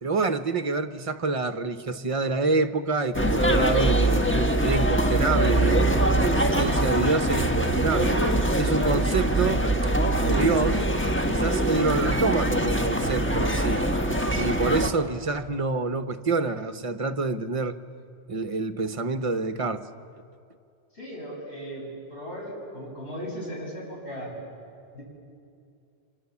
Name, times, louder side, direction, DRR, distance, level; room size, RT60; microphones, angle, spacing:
voice 1, 0.0-4.3 4.6-8.2 8.6-9.6 10.2-10.8 11.3-13.8 14.4-17.8 18.3-19.9, right 3 dB, 35° right, 0.9 m, -27 dB
sound 1, 3.1-14.9, right 1 dB, 10° left, 1.4 m, -23 dB
voice 2, 20.9-24.3 24.9-25.0, equal, 90° left, 7.3 m, -37 dB
29.5 x 25.5 x 7.2 m
omnidirectional pair, 1.1 m